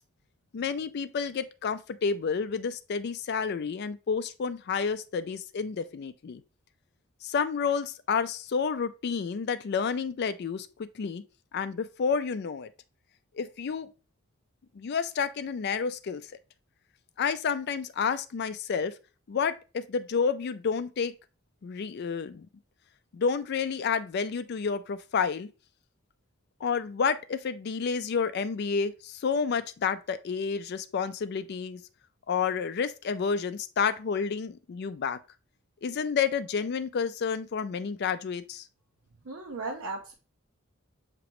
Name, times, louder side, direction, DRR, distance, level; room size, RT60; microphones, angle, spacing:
voice 1, 0.5-6.4 7.2-10.7 11.0-11.2 11.5-12.7 13.4-13.9 14.8-16.2 17.2-18.9 19.3-21.1 21.6-22.5 23.1-25.5 26.6-31.8 32.3-35.2 35.8-38.6, left 6 dB, 50° left, 0.3 m, -30 dB
voice 2, 39.2-40.1, right 3 dB, 85° right, 0.6 m, -36 dB
6.0 x 3.0 x 3.0 m
head